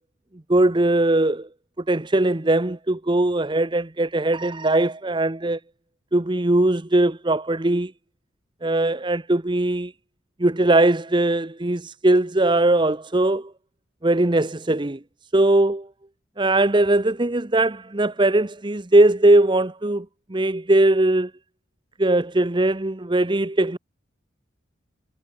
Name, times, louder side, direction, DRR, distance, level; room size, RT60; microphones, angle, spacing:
voice 1, 0.5-1.5 1.9-5.6 6.1-7.9 8.6-9.9 10.4-13.5 14.0-15.0 15.3-15.9 16.4-21.3 22.0-23.8, right 2 dB, 25° right, 0.8 m, -20 dB
head